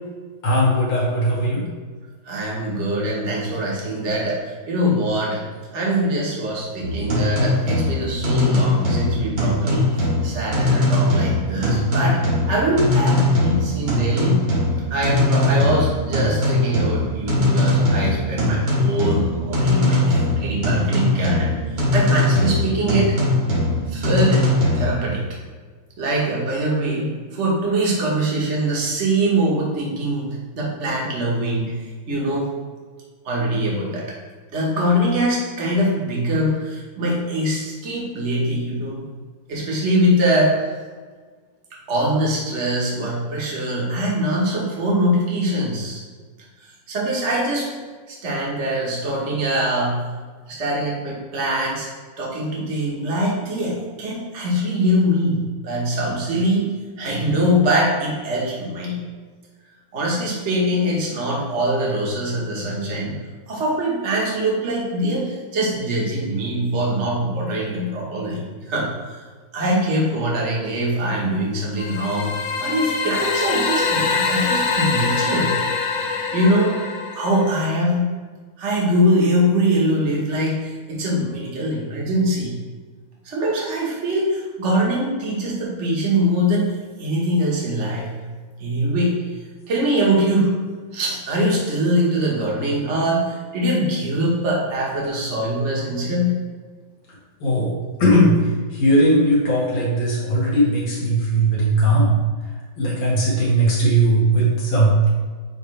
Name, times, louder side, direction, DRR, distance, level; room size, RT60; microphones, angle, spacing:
voice 1, 0.4-1.6 97.4-97.7 98.0-102.1 102.8-105.1, right 1 dB, 85° left, -6 dB, 2.5 m, -18 dB
voice 2, 2.2-5.4 5.7-12.2 12.5-14.4 14.9-21.6 21.9-23.1 23.9-25.2 26.0-31.8 32.1-32.5 33.2-34.0 34.5-39.0 39.5-40.7 41.9-46.0 46.9-47.7 48.1-50.0 50.5-51.9 52.2-56.7 57.0-59.0 59.9-63.1 63.5-69.2 69.5-75.5 76.3-76.8 77.1-78.1 78.6-82.5 83.2-88.1 88.6-89.2 89.7-90.5 90.9-96.4, equal, 40° right, -4 dB, 1.5 m, -22 dB
sound 1, 6.8-25.0, left 1 dB, 70° right, 2.6 m, -20 dB
sound 2, 71.8-77.7, left 4 dB, 65° left, 0.9 m, -24 dB
9.1 x 3.3 x 3.3 m, 1.5 s
omnidirectional pair, 2.2 m